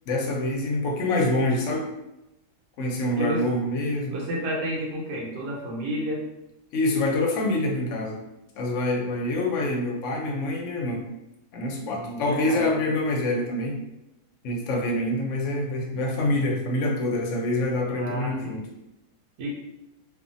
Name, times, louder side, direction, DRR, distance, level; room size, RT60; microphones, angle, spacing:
voice 1, 0.1-1.9 2.8-4.1 6.7-8.2 8.6-11.1 11.5-13.8 14.4-18.6, left 1 dB, 65° left, 0 dB, 0.8 m, -26 dB
voice 2, 3.2-3.5 4.1-6.2 11.9-12.7 17.9-18.6 19.4-19.5, equal, 80° right, -2 dB, 1.2 m, -31 dB
2.6 x 2.4 x 2.5 m, 0.93 s
omnidirectional pair, 1.7 m